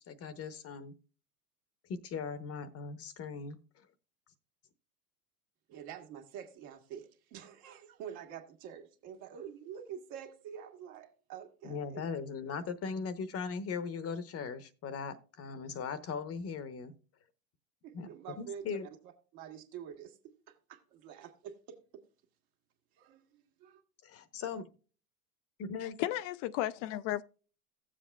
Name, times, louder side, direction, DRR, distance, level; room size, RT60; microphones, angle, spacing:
voice 1, 0.1-0.9 1.9-3.9 11.6-16.9 17.9-18.1 18.4-18.9 24.0-24.7 25.6-26.0, left 5 dB, 30° left, 0.8 m, -39 dB
voice 2, 5.7-12.0 17.8-18.8 19.0-20.2 20.5-22.0 22.9-23.8, right 8 dB, 60° right, 1.8 m, -47 dB
voice 3, 25.8-27.2, left 14 dB, 50° left, 0.5 m, -34 dB
16.5 x 7.4 x 2.3 m
hypercardioid pair, 95°, 47 cm